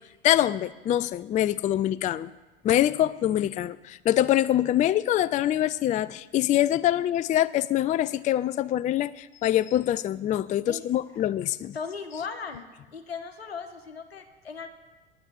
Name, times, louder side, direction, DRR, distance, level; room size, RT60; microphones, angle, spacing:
voice 1, 0.2-2.3 2.6-11.7, left 12 dB, 25° left, 19 dB, 0.4 m, -24 dB
voice 2, 11.7-12.7 12.9-14.7, left 5 dB, 85° left, 8 dB, 1.3 m, -37 dB
9.9 x 9.4 x 8.4 m, 1.2 s
hypercardioid pair, 75°, 30 cm